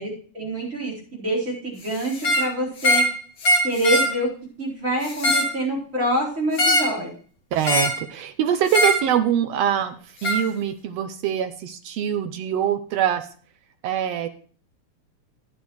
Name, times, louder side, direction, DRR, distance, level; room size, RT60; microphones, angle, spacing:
voice 1, 0.0-3.0 3.6-4.3 4.6-7.1, right 1 dB, 25° right, -5 dB, 4.5 m, -26 dB
sound 1, 2.1-2.5 2.8-3.1 3.4-4.1 5.0-5.5 6.6-7.0 7.6-8.0 8.7-9.0 10.2-10.4, equal, 40° left, 1.5 m, -21 dB
voice 2, 7.5-9.9 10.2-13.3 13.8-14.3, right 10 dB, 75° right, 9 dB, 1.5 m, -23 dB
12.0 x 10.0 x 3.1 m, 0.43 s
omnidirectional pair, 3.4 m